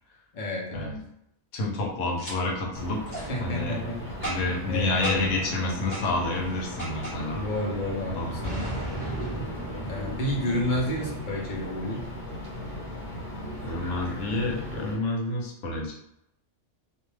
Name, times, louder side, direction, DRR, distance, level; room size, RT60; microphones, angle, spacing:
voice 1, 0.3-1.0 3.3-4.0 4.7-5.3 7.3-8.8 9.9-12.0, left 1 dB, 50° left, -3 dB, 0.7 m, -30 dB
voice 2, 1.5-3.0 3.4-3.8 4.2-7.4 8.0-8.4 13.6-16.0, left 2 dB, 85° left, 0 dB, 1.0 m, -29 dB
Boom, 2.2-2.3 3.1-3.3 4.2-4.6 5.0-5.4 5.9-6.1 6.8-7.2 8.4-11.1, right 1 dB, 20° left, 0.9 m, -35 dB
sound 1, 2.7-15.0, left 1 dB, 25° right, 0.6 m, -37 dB
2.4 x 2.3 x 3.1 m, 0.78 s
omnidirectional pair, 1.3 m